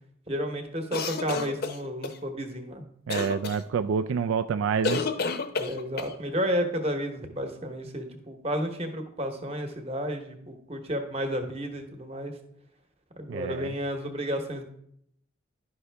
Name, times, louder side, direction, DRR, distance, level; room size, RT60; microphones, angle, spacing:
voice 1, 0.3-2.9 5.5-12.4 13.1-14.6, equal, 30° right, 5 dB, 1.0 m, -32 dB
sound 1, 0.9-2.2 3.1-3.6 4.8-6.1, left 4 dB, 50° left, 0.7 m, -30 dB
voice 2, 3.1-5.0 13.3-13.7, right 6 dB, 75° right, 9 dB, 0.3 m, -27 dB
11.0 x 5.5 x 3.4 m, 0.71 s
head